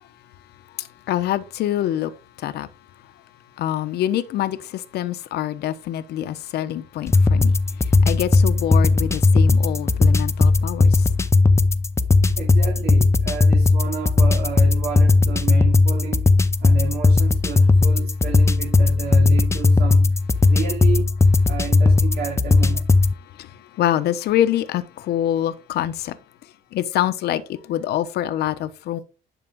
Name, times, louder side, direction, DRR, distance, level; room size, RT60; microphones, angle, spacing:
voice 1, 0.8-2.1 2.4-2.7 3.6-7.5 7.8-11.1 23.4-26.2 26.7-29.0, left 12 dB, 70° left, 1.1 m, -25 dB
sound 1, 7.1-23.1, left 3 dB, 15° left, 0.8 m, -17 dB
voice 2, 12.4-16.3 16.6-20.1 20.5-21.2 21.4-22.8, right 7 dB, 65° right, 2.7 m, -31 dB
11.0 x 5.9 x 3.7 m
cardioid pair, 110°, 17 cm